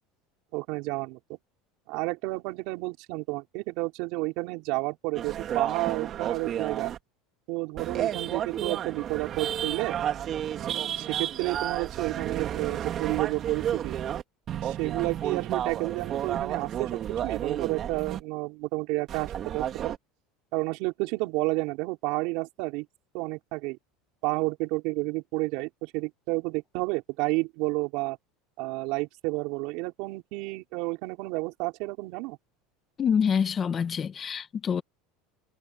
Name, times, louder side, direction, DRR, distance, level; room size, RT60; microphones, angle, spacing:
voice 1, 0.5-1.4 1.9-6.9 7.5-9.9 10.9-13.9 14.6-19.9 20.5-22.9 23.1-23.8 24.2-28.2 28.6-32.4, right 24 dB, 60° right, 4.9 m, -31 dB
sound 1, 5.1-7.0 7.8-14.2 14.5-18.2 19.1-20.0, right 10 dB, 35° right, 3.1 m, -32 dB
voice 2, 33.0-34.8, left 7 dB, 25° left, 1.7 m, -26 dB
supercardioid pair, 145°, 0 cm